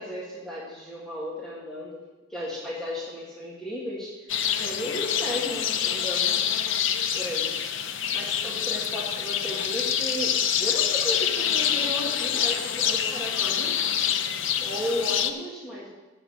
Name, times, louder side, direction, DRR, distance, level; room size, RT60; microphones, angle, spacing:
voice 1, 0.0-2.0 2.3-4.1 4.6-6.4 7.2-7.5 7.9-13.8 14.5-15.9, left 1 dB, 5° left, -7 dB, 1.8 m, -34 dB
sound 1, 4.3-15.3, left 9 dB, 60° left, 0.6 m, -26 dB
8.4 x 6.8 x 7.2 m, 1.2 s
head